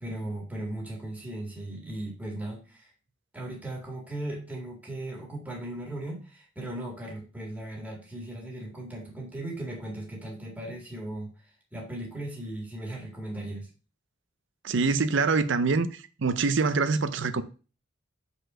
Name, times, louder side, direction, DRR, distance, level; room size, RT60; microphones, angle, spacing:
voice 1, 0.0-2.9 3.3-11.3 11.7-13.7, right 1 dB, 5° right, 1.9 m, -37 dB
voice 2, 14.6-15.9 16.2-17.4, right 4 dB, 65° right, 0.6 m, -24 dB
5.2 x 4.2 x 6.1 m
head